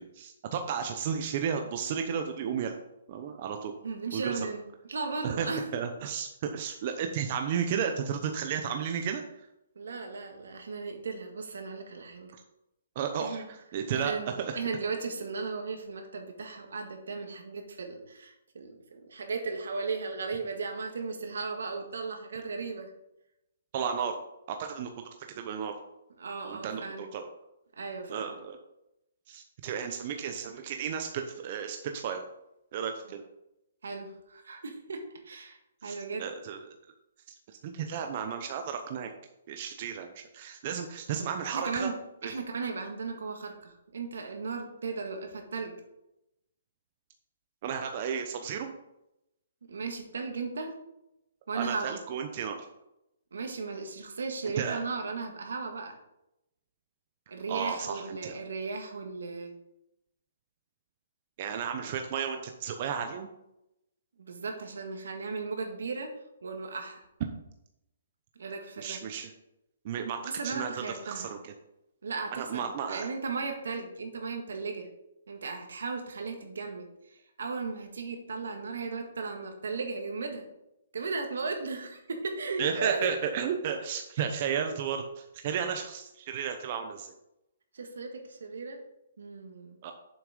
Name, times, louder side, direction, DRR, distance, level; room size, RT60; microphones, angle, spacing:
voice 1, 0.0-2.7 3.1-3.7 4.1-4.4 5.2-5.5 5.7-9.2 12.3-12.4 13.0-14.6 23.7-24.2 24.5-24.9 25.3-25.7 26.4-27.2 28.1-28.6 29.3-32.2 32.7-33.2 35.8-36.6 37.6-39.1 39.5-40.1 40.3-41.9 42.2-42.3 47.6-48.7 51.5-52.6 54.6-54.8 57.5-58.4 61.4-63.3 68.8-69.3 69.8-70.7 71.0-71.5 72.3-73.1 82.6-87.1 89.8-89.9, right 7 dB, 40° right, 5 dB, 0.8 m, -33 dB
voice 2, 3.8-4.6 4.9-5.7 9.8-12.3 13.2-13.5 13.9-22.9 26.2-27.1 27.8-28.4 33.8-36.2 41.5-45.7 49.7-50.8 51.5-52.0 53.3-56.0 57.3-59.5 64.2-66.1 66.4-67.0 68.4-69.0 70.2-71.3 72.0-74.9 75.3-76.9 77.4-80.4 80.9-83.1 87.7-88.8 89.2-89.8, right 4 dB, 80° right, 4 dB, 1.8 m, -36 dB
7.3 x 5.9 x 5.2 m, 0.86 s
hypercardioid pair, 155°, 0 cm